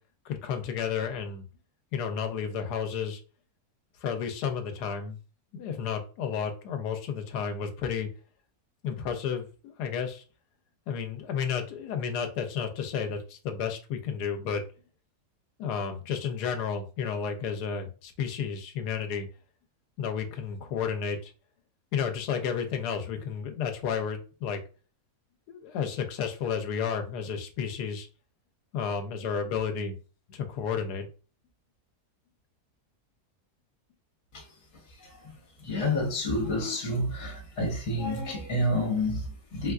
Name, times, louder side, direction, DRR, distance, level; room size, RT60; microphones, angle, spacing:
voice 1, 0.3-1.4 1.9-3.2 4.0-5.2 5.5-8.1 8.8-10.2 10.9-14.6 15.6-19.3 20.0-21.3 21.9-24.6 25.5-28.1 28.7-30.0 30.3-31.1, left 7 dB, 85° left, 1.2 m, -32 dB
voice 2, 35.6-39.7, left 1 dB, 55° left, 1.4 m, -29 dB
4.0 x 2.3 x 2.3 m
omnidirectional pair, 1.7 m